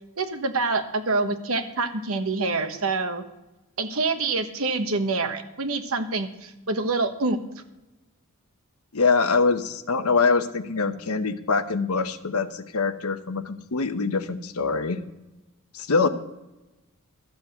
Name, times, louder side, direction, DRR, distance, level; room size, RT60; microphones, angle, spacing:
voice 1, 0.2-3.2 3.8-7.4 16.0-16.1, right 3 dB, 70° right, 8 dB, 1.2 m, -26 dB
voice 2, 8.9-15.0 15.7-16.1, left 4 dB, 80° left, 10 dB, 0.9 m, -24 dB
13.0 x 7.2 x 7.9 m, 1.0 s
head